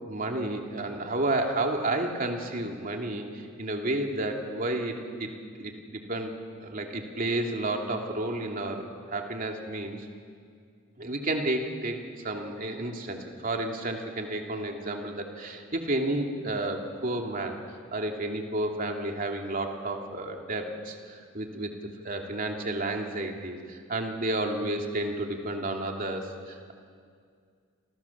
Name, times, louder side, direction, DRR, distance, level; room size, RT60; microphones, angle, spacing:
voice 1, 0.1-5.3 5.6-6.3 6.6-10.1 11.0-12.0 12.2-17.6 17.9-21.7 22.0-26.7, right 2 dB, 45° right, 2 dB, 2.8 m, -31 dB
28.5 x 28.0 x 7.3 m, 2.2 s
head